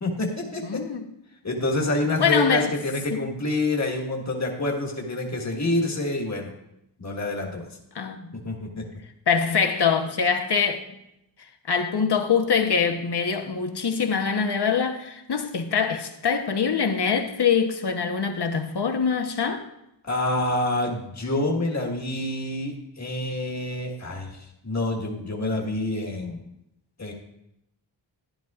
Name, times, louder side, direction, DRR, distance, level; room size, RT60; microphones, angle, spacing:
voice 1, 0.0-0.8 1.4-6.5 7.0-7.7 8.3-8.8 20.0-26.4 27.0-27.1, left 2 dB, 35° left, 1.5 m, -27 dB
voice 2, 0.6-1.0 2.2-2.7 3.1-3.2 7.9-8.4 9.3-10.8 11.7-19.6, left 6 dB, 60° left, 1.0 m, -24 dB
11.5 x 11.0 x 2.4 m
wide cardioid pair, 65°, 45 cm